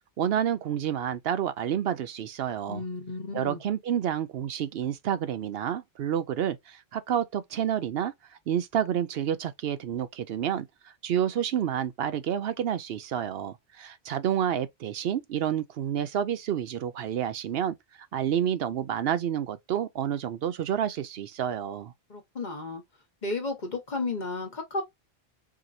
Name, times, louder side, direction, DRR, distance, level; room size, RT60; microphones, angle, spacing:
voice 1, 0.2-2.8 3.3-10.7 11.0-17.7 18.1-21.9, right 9 dB, 70° right, 0.8 m, -29 dB
voice 2, 2.7-3.6 22.1-22.8 23.2-24.8, left 3 dB, 45° left, 1.1 m, -33 dB
4.7 x 2.9 x 2.6 m
omnidirectional pair, 1.1 m